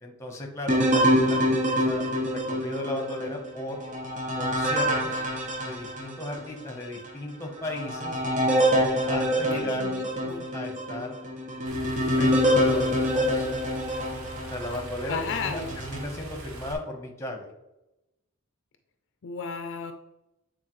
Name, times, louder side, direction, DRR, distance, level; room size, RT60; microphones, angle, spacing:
voice 1, 0.0-3.8 4.3-5.2 5.6-8.2 9.1-9.8 10.5-11.1 12.1-13.5 14.5-17.5, left 1 dB, 15° left, 3 dB, 1.1 m, -36 dB
sound 1, 0.7-6.4 7.0-7.1 7.6-14.8 15.4-16.0, equal, 35° right, 0.9 m, -26 dB
voice 2, 9.5-10.5 15.1-15.8 19.2-19.9, left 5 dB, 60° left, 7 dB, 0.5 m, -34 dB
sound 2, 11.7-16.7, right 2 dB, 75° right, 1.1 m, -41 dB
8.6 x 4.1 x 3.2 m, 0.94 s
head